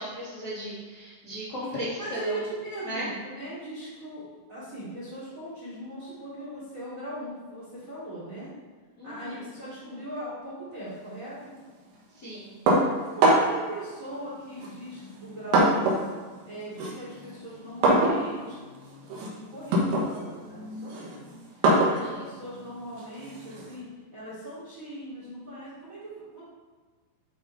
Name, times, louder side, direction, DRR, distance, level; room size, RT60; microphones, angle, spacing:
voice 1, 0.0-2.4 2.8-3.1 9.0-9.4 12.1-12.5 21.9-22.2, equal, 80° left, -10 dB, 0.9 m, -36 dB
voice 2, 1.6-8.5 9.0-11.5 13.0-16.0 16.4-18.7 19.3-21.3 21.5-23.9 24.1-26.4, right 1 dB, 30° right, -9 dB, 1.7 m, -39 dB
sound 1, 12.7-13.7 14.6-16.1 16.4-23.7, right 1 dB, 75° right, 3.5 m, -25 dB
11.5 x 3.8 x 4.0 m, 1.4 s
omnidirectional pair, 5.4 m